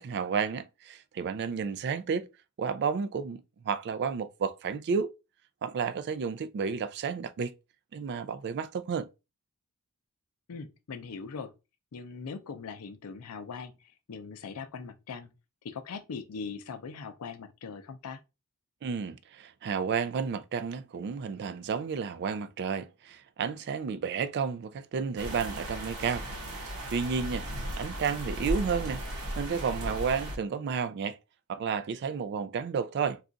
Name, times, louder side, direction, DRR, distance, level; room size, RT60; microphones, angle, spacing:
voice 1, 0.0-2.3 2.6-5.1 5.6-7.5 7.9-9.1 18.8-26.3 26.9-27.5 27.8-29.0 29.4-31.2 31.5-33.2, right 6 dB, 50° right, 0.3 m, -31 dB
voice 2, 10.5-11.5 11.9-15.3 15.6-18.2, left 5 dB, 80° left, 0.5 m, -41 dB
sound 1, 25.2-30.4, equal, 90° right, 0.9 m, -36 dB
2.4 x 2.3 x 3.8 m
head